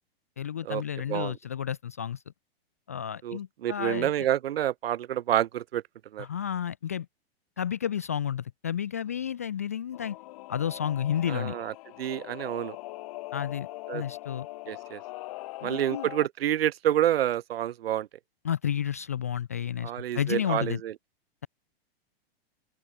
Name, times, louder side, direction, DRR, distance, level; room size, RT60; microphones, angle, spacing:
voice 1, 0.4-2.2 2.9-4.1 6.2-7.1 7.6-10.2 10.5-11.6 13.3-13.7 13.9-14.5 15.6-16.1 18.4-20.8, left 9 dB, 15° left, 0.3 m, -31 dB
voice 2, 3.2-5.8 6.1-6.3 11.3-12.8 13.9-14.0 14.7-15.0 15.6-18.1 19.8-20.9, right 11 dB, 70° right, 1.5 m, -28 dB
Singing / Musical instrument, 9.9-16.3, left 19 dB, 35° left, 2.0 m, -41 dB
open air
supercardioid pair, 180°, 31 cm